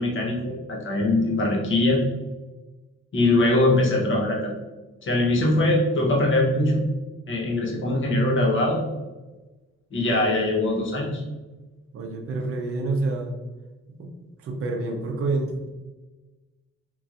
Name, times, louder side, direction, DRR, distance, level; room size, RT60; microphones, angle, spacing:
voice 1, 0.0-2.0 3.1-4.5 5.0-6.8 7.3-8.8 9.9-11.2, left 2 dB, 40° left, -2 dB, 0.9 m, -22 dB
voice 2, 11.9-13.3 14.0-14.1 14.4-15.7, right 2 dB, 50° right, 2 dB, 0.6 m, -28 dB
3.1 x 2.6 x 2.4 m, 1.2 s
cardioid pair, 90°, 30 cm